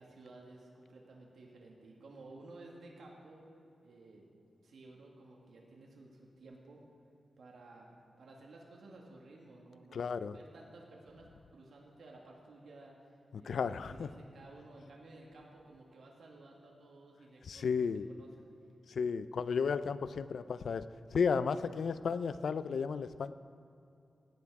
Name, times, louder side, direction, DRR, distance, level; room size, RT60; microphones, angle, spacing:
voice 1, 0.0-3.5 3.8-4.3 4.6-6.8 7.4-17.9 18.2-18.3, right 2 dB, 80° right, -2 dB, 1.9 m, -55 dB
voice 2, 9.9-10.3 13.4-14.1 17.4-18.1 18.9-20.8 21.1-23.3, left 5 dB, 75° left, 14 dB, 0.4 m, -33 dB
16.5 x 9.3 x 4.8 m, 2.7 s
wide cardioid pair, 110°, 0 cm